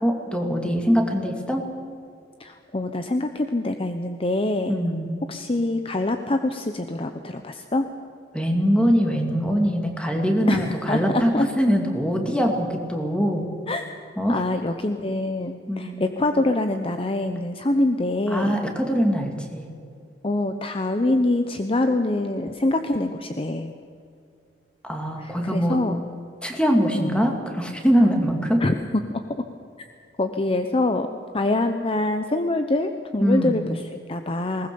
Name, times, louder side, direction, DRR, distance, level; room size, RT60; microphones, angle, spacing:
voice 1, 0.0-1.6 4.7-5.1 8.3-13.5 14.2-14.4 15.7-16.0 18.3-19.7 24.8-25.8 26.4-28.6 33.2-33.6, equal, 5° left, 3 dB, 2.5 m, -22 dB
voice 2, 2.4-4.8 5.3-7.8 10.5-11.5 13.7-13.9 14.3-18.6 20.2-23.7 25.2-26.0 26.9-27.2 28.6-28.8 29.1-29.2 29.8-29.9 30.2-31.1 31.3-34.7, left 2 dB, 30° left, 7 dB, 0.8 m, -25 dB
20.5 x 19.0 x 7.0 m, 2.4 s
head